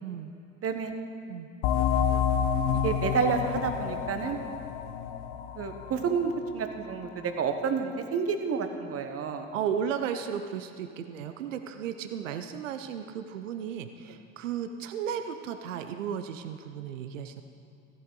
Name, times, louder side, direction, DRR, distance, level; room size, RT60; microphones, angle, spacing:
voice 1, 0.0-0.3 1.3-1.5 9.5-17.4, right 8 dB, 80° right, 8 dB, 0.6 m, -34 dB
voice 2, 0.6-0.9 2.8-4.4 5.6-9.5, right 6 dB, 35° right, 7 dB, 1.1 m, -29 dB
sound 1, 1.6-6.9, left 7 dB, 65° left, 0.8 m, -29 dB
14.5 x 8.5 x 3.9 m, 2.6 s
figure-of-eight pair, 60°, 38 cm